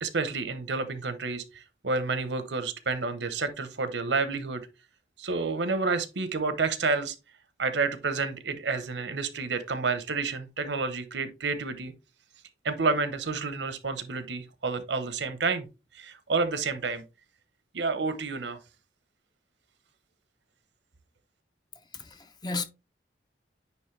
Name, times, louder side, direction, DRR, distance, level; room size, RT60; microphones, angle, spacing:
voice 1, 0.0-4.7 5.2-7.1 7.6-11.9 12.6-15.7 15.9-17.0 17.7-18.6, right 4 dB, 85° right, 0.9 m, -29 dB
voice 2, 21.8-22.6, left 3 dB, 25° left, 0.6 m, -35 dB
9.3 x 3.1 x 3.2 m
head